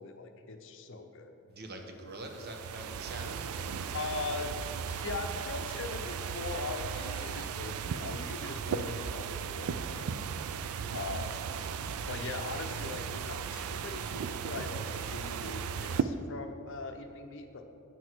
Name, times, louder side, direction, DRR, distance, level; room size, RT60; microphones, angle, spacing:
voice 1, 0.0-1.3 3.9-4.5 4.9-10.4 10.9-11.3 12.1-17.6, left 3 dB, 60° left, 6 dB, 0.7 m, -40 dB
voice 2, 1.5-4.2, right 2 dB, 45° right, 3 dB, 1.0 m, -44 dB
sound 1, 2.2-16.0, right 7 dB, 70° right, 0.4 m, -36 dB
9.0 x 6.3 x 4.5 m, 2.6 s
head